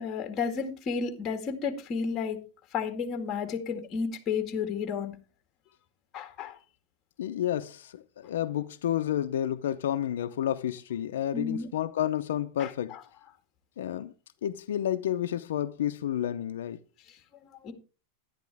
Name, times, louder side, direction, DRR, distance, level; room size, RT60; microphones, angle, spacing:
voice 1, 0.0-2.4 2.7-5.1 6.1-6.6 11.3-11.7 12.6-13.0 17.6-17.7, left 5 dB, 30° left, 2.0 m, -32 dB
voice 2, 7.2-13.0 13.8-14.1 14.4-16.8, left 11 dB, 85° left, 0.6 m, -30 dB
11.0 x 10.5 x 3.5 m
supercardioid pair, 150°, 0 cm